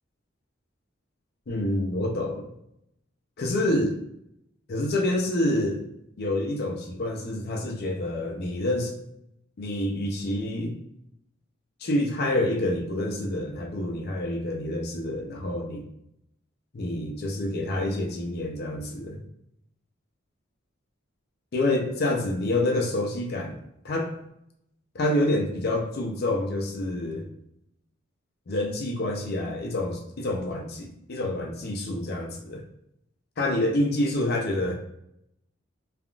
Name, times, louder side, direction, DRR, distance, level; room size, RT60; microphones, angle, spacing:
voice 1, 1.5-2.5 3.4-4.0 4.7-5.8 6.2-8.9 9.6-10.8 11.8-15.8 16.7-19.2 21.5-23.5 23.8-24.2 24.9-27.2 28.5-32.6 33.4-34.7, left 1 dB, 55° left, 2 dB, 0.5 m, -27 dB
3.4 x 2.4 x 2.3 m, 0.78 s
head